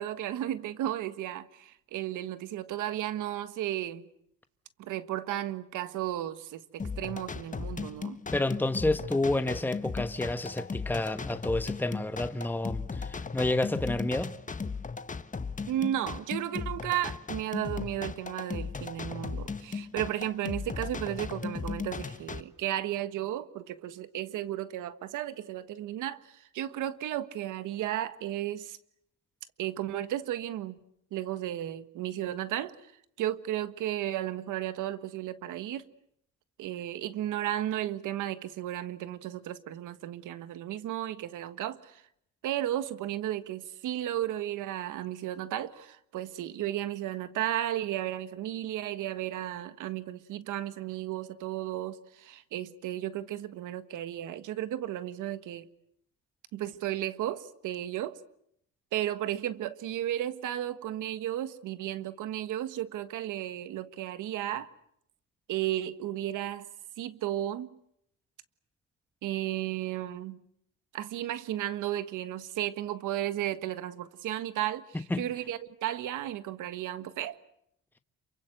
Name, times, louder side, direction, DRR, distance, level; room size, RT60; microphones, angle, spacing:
voice 1, 0.0-4.1 4.8-8.2 15.7-28.8 29.6-30.8 31.1-32.8 33.2-35.8 36.6-42.0 42.4-55.7 56.5-58.2 58.9-64.7 65.5-66.7 67.0-67.7 69.2-70.4 70.9-74.8 75.2-77.4, right 12 dB, 85° right, 1.5 m, -34 dB
sound 1, 6.8-22.4, left 5 dB, 25° left, 1.5 m, -37 dB
voice 2, 8.3-14.3 75.1-75.2, left 2 dB, 5° left, 1.2 m, -29 dB
28.0 x 24.0 x 8.0 m
cardioid pair, 90°, 30 cm